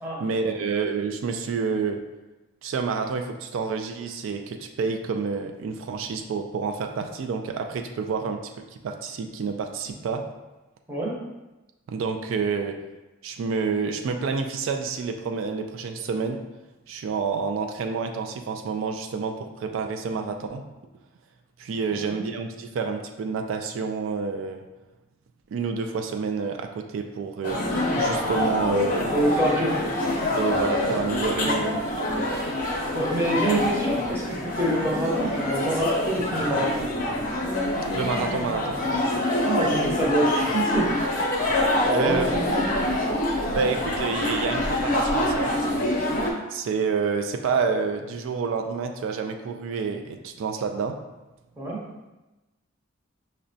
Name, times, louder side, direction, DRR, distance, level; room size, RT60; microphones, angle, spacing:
voice 1, 0.2-2.0 2.6-8.4 8.7-10.2 11.9-12.8 13.2-16.4 16.9-20.6 21.6-24.6 25.5-27.6 28.0-29.1 30.4-32.3 37.9-38.8 41.9-42.3 43.5-46.0 46.5-51.0, right 5 dB, 75° right, 6 dB, 0.3 m, -28 dB
sound 1, 27.4-46.3, left 1 dB, 40° left, 0.6 m, -26 dB
voice 2, 29.1-29.8 31.4-31.5 32.9-36.8 39.4-40.9 41.8-42.8 51.6-51.8, right 1 dB, 10° right, -5 dB, 0.7 m, -26 dB
5.8 x 2.1 x 2.6 m, 1.1 s
head